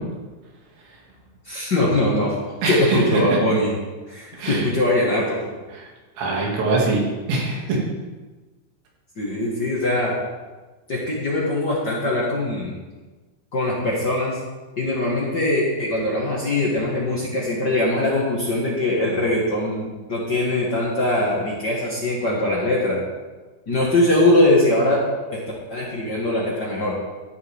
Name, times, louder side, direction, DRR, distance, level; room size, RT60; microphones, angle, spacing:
voice 1, 1.4-2.4 2.6-3.7 4.1-5.4 9.2-10.1 10.9-12.8 13.5-14.4 14.8-23.0 23.7-25.0 25.3-25.4 25.7-27.0, left 1 dB, 60° left, -5 dB, 1.1 m, -21 dB
voice 2, 2.6-3.2 4.4-4.7 5.7-5.9 6.2-7.0 7.3-7.8, right 3 dB, 80° right, -3 dB, 4.7 m, -23 dB
13.0 x 11.0 x 3.7 m, 1.3 s
omnidirectional pair, 5.0 m